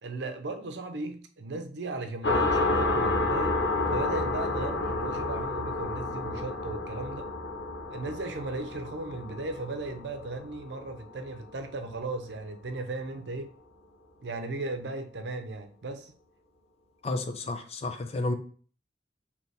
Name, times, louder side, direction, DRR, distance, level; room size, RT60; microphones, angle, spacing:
voice 1, 0.0-3.6 3.9-7.3 7.9-13.5 14.2-16.1, right 2 dB, 70° right, 0.6 m, -36 dB
sound 1, 2.2-11.5, left 2 dB, 85° left, 0.8 m, -30 dB
voice 2, 17.0-18.3, left 2 dB, 35° left, 0.5 m, -31 dB
3.3 x 2.9 x 4.1 m
head